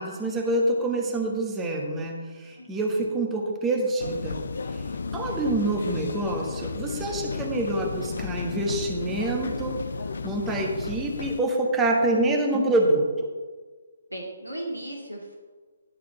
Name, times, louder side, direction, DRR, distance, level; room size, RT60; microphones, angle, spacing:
voice 1, 0.0-4.4 4.7-4.8 5.1-9.8 10.2-13.3, right 1 dB, 10° right, 0 dB, 1.2 m, -26 dB
sound 1, 4.0-11.4, left 4 dB, 55° left, 0.5 m, -33 dB
voice 2, 14.1-15.4, right 1 dB, 90° right, -2 dB, 2.1 m, -36 dB
11.5 x 4.5 x 7.3 m, 1.4 s
figure-of-eight pair, 135°, 0 cm